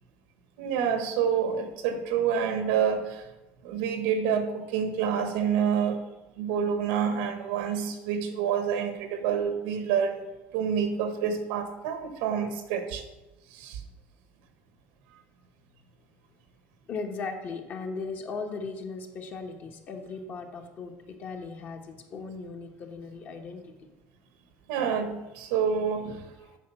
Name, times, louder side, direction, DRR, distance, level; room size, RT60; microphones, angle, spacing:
voice 1, 0.6-3.3 3.6-6.0 6.4-10.2 10.5-13.0 13.5-13.8 24.7-26.2, right 7 dB, 85° right, 7 dB, 1.3 m, -28 dB
voice 2, 16.9-23.9 26.4-26.6, left 4 dB, 35° left, 5 dB, 1.1 m, -38 dB
8.5 x 5.0 x 5.7 m, 1.0 s
cardioid pair, 155°, 5 cm